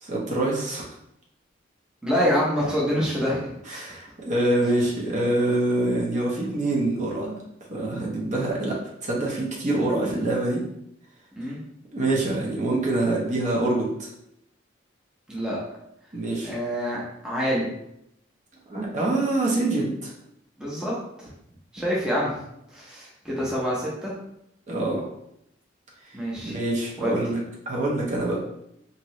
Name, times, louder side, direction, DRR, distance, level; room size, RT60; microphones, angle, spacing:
voice 1, 0.0-0.8 3.7-7.4 7.7-8.8 9.0-10.6 11.9-14.1 16.1-16.5 18.7-20.1 24.7-25.0 26.4-27.4 27.7-28.4, right 2 dB, 40° right, -4 dB, 0.7 m, -25 dB
voice 2, 2.0-3.8 11.4-11.6 15.3-15.6 16.4-17.7 20.6-21.3 21.7-22.3 22.7-24.1 26.1-26.5 27.0-27.2, equal, 5° right, -6 dB, 0.7 m, -26 dB
2.9 x 2.7 x 3.0 m, 0.78 s
head